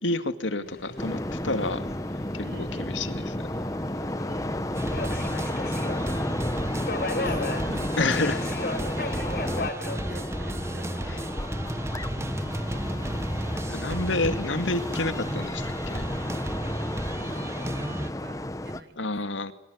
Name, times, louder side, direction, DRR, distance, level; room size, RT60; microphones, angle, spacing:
voice 1, 0.0-1.8 2.3-2.4 2.9-3.1 8.0-8.4 11.1-11.2 13.7-16.1 19.0-19.5, left 2 dB, 85° left, 10 dB, 2.2 m, -29 dB
Subway metro underground, 0.7-14.3, left 2 dB, 50° left, 4.7 m, -38 dB
sound 1, 1.0-18.8, left 1 dB, 15° left, 1.1 m, -32 dB
voice 2, 2.4-3.4 4.3-8.5 8.8-9.3 9.8-11.3 17.1-19.1, right 1 dB, 65° right, 12 dB, 4.5 m, -47 dB
sound 2, 4.7-18.1, right 1 dB, 15° right, 1.2 m, -33 dB
24.0 x 24.0 x 9.6 m, 0.93 s
head